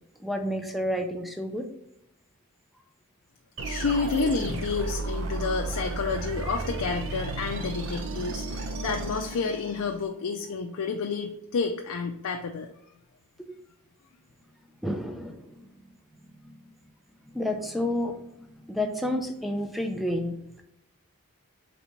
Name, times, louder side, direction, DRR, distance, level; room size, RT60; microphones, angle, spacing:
voice 1, 0.2-1.7 14.8-15.7 16.4-16.5 17.3-18.2 18.6-20.6, left 1 dB, ahead, 5 dB, 0.4 m, -30 dB
voice 2, 3.6-12.7, left 4 dB, 85° left, 3 dB, 0.4 m, -30 dB
sound 1, 3.6-10.0, right 2 dB, 65° right, 0.6 m, -33 dB
4.1 x 3.3 x 2.9 m, 0.83 s
head